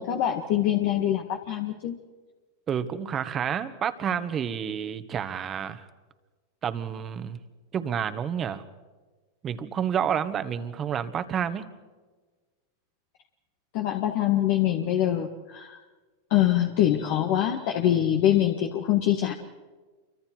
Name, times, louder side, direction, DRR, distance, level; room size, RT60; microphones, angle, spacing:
voice 1, 0.0-2.0 13.7-15.8 16.3-19.3, left 11 dB, 55° left, 3 dB, 1.8 m, -24 dB
voice 2, 2.7-5.9 6.6-7.4 7.7-8.6 9.4-11.7, right 8 dB, 30° right, 11 dB, 1.6 m, -29 dB
28.0 x 25.0 x 4.7 m, 1.3 s
hypercardioid pair, 110°, 0 cm